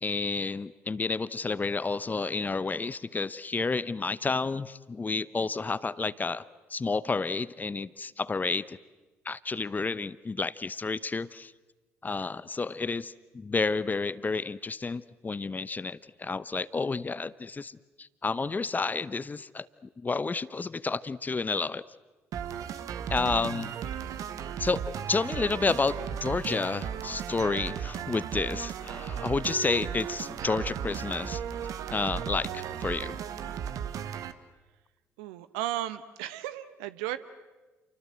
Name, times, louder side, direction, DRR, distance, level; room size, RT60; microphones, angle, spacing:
voice 1, 0.0-8.8 9.2-11.5 12.0-21.8 23.1-23.7 24.6-31.4 31.9-33.2, left 4 dB, 25° left, 18 dB, 0.9 m, -30 dB
sound 1, 22.3-34.3, right 8 dB, 55° right, 1.3 m, -35 dB
voice 2, 35.2-37.2, right 13 dB, 70° right, 13 dB, 1.2 m, -34 dB
29.5 x 24.0 x 7.8 m, 1.2 s
figure-of-eight pair, 50°, 7 cm